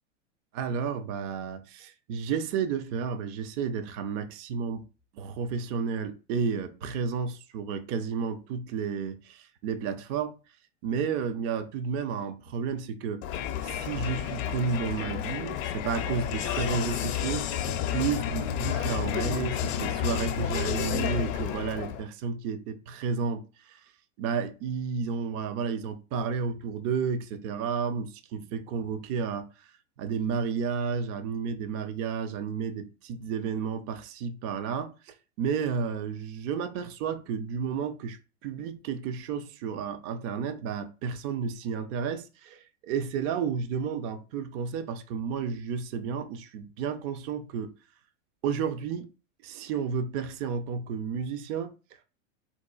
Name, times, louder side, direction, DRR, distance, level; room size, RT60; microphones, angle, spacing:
voice 1, 0.5-4.9 5.1-10.4 10.8-13.2 13.6-23.8 24.2-47.7 48.4-49.1 49.4-51.7, right 6 dB, 35° right, 0.4 m, -32 dB
Crowd, 13.2-22.1, left 10 dB, 35° left, 0.4 m, -31 dB
4.1 x 2.4 x 2.3 m
hypercardioid pair, 110°, 39 cm